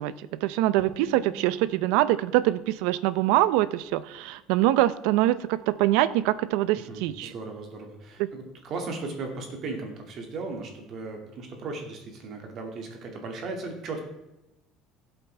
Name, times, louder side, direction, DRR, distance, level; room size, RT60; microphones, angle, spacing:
voice 1, 0.0-7.3, right 15 dB, 75° right, 16 dB, 0.5 m, -24 dB
sound 1, 0.8-4.3, right 4 dB, 5° left, 2.3 m, -48 dB
voice 2, 6.8-14.0, right 3 dB, 40° right, 3 dB, 2.1 m, -36 dB
16.0 x 8.0 x 3.4 m, 0.95 s
cardioid pair, 170°, 0 cm